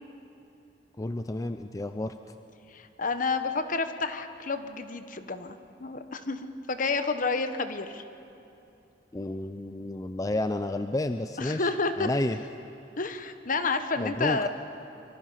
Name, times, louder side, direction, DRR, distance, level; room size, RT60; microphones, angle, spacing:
voice 1, 1.0-2.2 9.1-11.7 12.0-12.4 14.0-14.5, left 1 dB, 20° left, 8 dB, 0.5 m, -31 dB
voice 2, 2.7-5.5 5.8-8.0 11.4-12.1 13.0-14.5, left 4 dB, 50° left, 9 dB, 1.1 m, -30 dB
25.0 x 23.5 x 5.7 m, 2.8 s
head